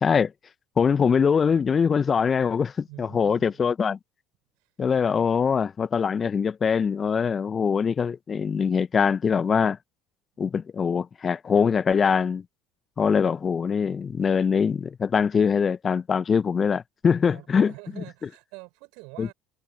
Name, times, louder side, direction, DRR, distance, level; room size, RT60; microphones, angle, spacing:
voice 1, 0.0-0.3 0.8-4.0 4.8-9.8 10.4-12.4 13.0-17.7 19.2-19.3, left 6 dB, 30° left, 1.3 m, -23 dB
voice 2, 2.9-3.6 17.3-19.3, right 29 dB, 60° right, 5.7 m, -45 dB
figure-of-eight pair, 65°, 0 cm